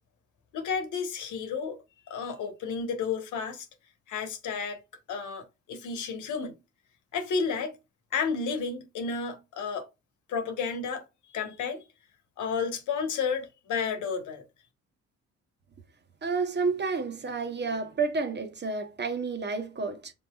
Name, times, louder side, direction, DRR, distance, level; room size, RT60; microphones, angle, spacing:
voice 1, 0.5-1.8 2.1-3.7 4.1-4.8 5.1-6.6 7.1-7.8 8.1-9.9 10.3-11.0 11.3-11.8 12.4-14.4, left 5 dB, 80° left, 1.4 m, -31 dB
voice 2, 16.2-20.1, right 4 dB, 35° right, 1.2 m, -30 dB
5.5 x 4.0 x 2.4 m
cardioid pair, 90°, 30 cm